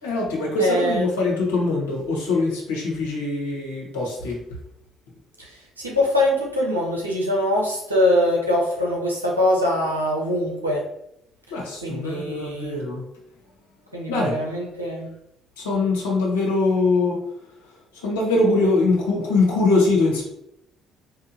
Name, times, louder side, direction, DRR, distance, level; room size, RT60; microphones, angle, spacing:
voice 1, 0.0-4.5 11.5-13.0 14.1-14.5 15.6-17.2 17.6-20.2, left 3 dB, 75° left, -4 dB, 1.2 m, -22 dB
voice 2, 0.6-1.1 5.4-10.8 11.8-12.8 13.9-15.1, left 1 dB, 85° right, -3 dB, 0.8 m, -23 dB
4.8 x 2.7 x 2.6 m, 0.79 s
figure-of-eight pair, 50°, 0 cm